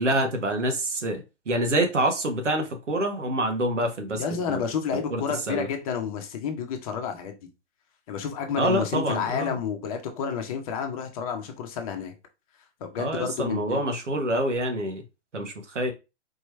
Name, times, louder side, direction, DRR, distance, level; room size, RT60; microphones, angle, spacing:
voice 1, 0.0-4.6 4.9-5.2 5.5-5.7 8.6-9.6 13.0-15.0 15.3-15.9, right 1 dB, 85° right, 1.5 m, -26 dB
voice 2, 4.1-7.4 8.1-12.1 12.8-13.8, left 7 dB, 30° left, 0.9 m, -30 dB
4.4 x 3.1 x 3.2 m
hypercardioid pair, 135°, 35 cm